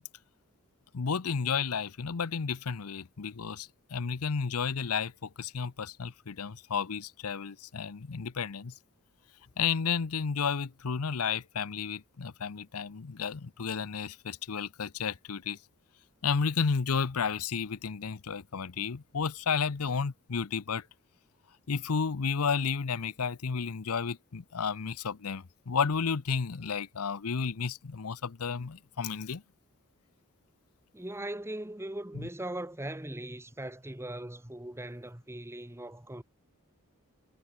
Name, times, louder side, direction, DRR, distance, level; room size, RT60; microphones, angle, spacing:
voice 1, 0.9-8.7 9.6-15.6 16.2-20.8 21.7-29.4 32.1-32.3, left 6 dB, 90° left, 0.7 m, -32 dB
voice 2, 30.9-36.2, right 1 dB, 10° right, 1.4 m, -39 dB
head